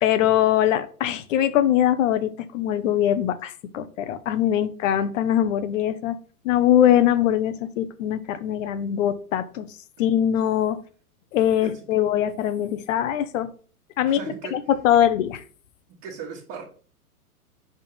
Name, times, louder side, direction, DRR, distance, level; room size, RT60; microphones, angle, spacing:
voice 1, 0.0-6.2 6.4-9.7 10.0-10.8 11.3-13.5 14.0-14.2 14.5-15.4, left 11 dB, 60° left, 13 dB, 0.9 m, -22 dB
voice 2, 11.6-12.0 14.0-14.5 15.9-16.6, right 6 dB, 35° right, -5 dB, 1.6 m, -38 dB
5.5 x 3.8 x 5.4 m, 0.41 s
hypercardioid pair, 125°, 45 cm